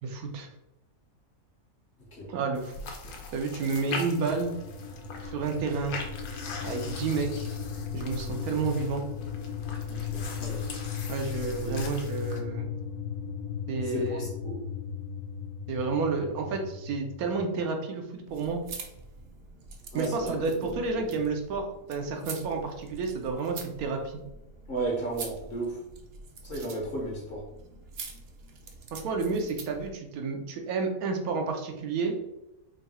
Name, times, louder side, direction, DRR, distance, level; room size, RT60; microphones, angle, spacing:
voice 1, 0.0-0.5 2.3-3.0 3.3-4.5 5.2-6.0 6.6-7.5 7.9-9.0 11.1-12.7 13.7-14.3 15.7-18.6 19.9-24.2 28.9-32.1, right 4 dB, 90° right, 3 dB, 1.2 m, -30 dB
sound 1, 2.6-12.4, left 3 dB, 85° left, 1.2 m, -41 dB
sound 2, 4.1-17.4, left 7 dB, 70° left, 0.9 m, -37 dB
voice 2, 9.9-10.6 11.6-11.7 13.8-14.6 19.9-20.4 24.7-25.8 26.4-27.4, right 2 dB, 45° left, -2 dB, 0.9 m, -34 dB
sound 3, 18.2-29.9, right 4 dB, 60° right, 0.7 m, -45 dB
3.7 x 2.3 x 4.1 m, 0.88 s
omnidirectional pair, 1.5 m